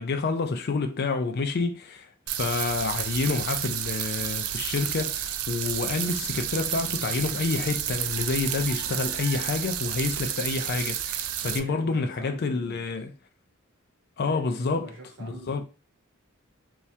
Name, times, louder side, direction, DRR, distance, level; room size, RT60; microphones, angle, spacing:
voice 1, 0.0-2.1 2.4-13.1 14.2-14.9 15.2-15.6, left 4 dB, 50° left, 0.4 m, -28 dB
sound 1, 2.3-11.6, right 10 dB, 85° right, 0.3 m, -31 dB
voice 2, 11.4-12.8 14.2-15.6, right 1 dB, 65° right, 1.2 m, -43 dB
2.8 x 2.3 x 3.1 m
head